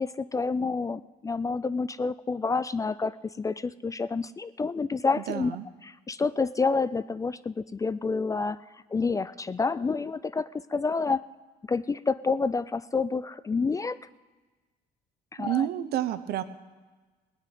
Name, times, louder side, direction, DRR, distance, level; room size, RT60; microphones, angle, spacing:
voice 1, 0.0-5.6 5.8-8.6 8.9-11.2 11.7-14.0 15.3-15.7, left 4 dB, 20° left, 17 dB, 0.3 m, -28 dB
voice 2, 5.3-5.7 15.4-16.4, right 12 dB, 70° right, 12 dB, 0.9 m, -29 dB
18.0 x 6.4 x 9.3 m, 1.3 s
cardioid pair, 110°, 17 cm